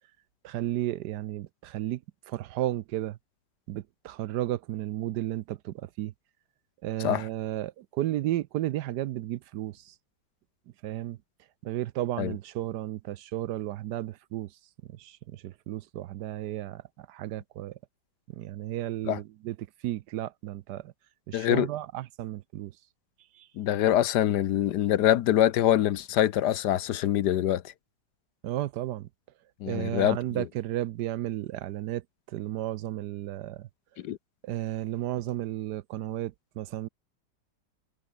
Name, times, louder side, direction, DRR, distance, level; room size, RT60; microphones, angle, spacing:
voice 1, 0.4-3.2 3.7-6.1 6.8-9.9 10.8-11.2 11.6-14.5 14.9-17.8 18.4-19.6 19.8-20.9 21.3-22.7 23.3-23.5 28.4-29.1 29.7-33.7 34.4-36.9, right 14 dB, 70° right, 1.1 m, -33 dB
voice 2, 21.3-21.7 23.6-27.6 29.6-30.4 34.0-34.2, left 12 dB, 70° left, 1.3 m, -24 dB
omnidirectional pair, 1.9 m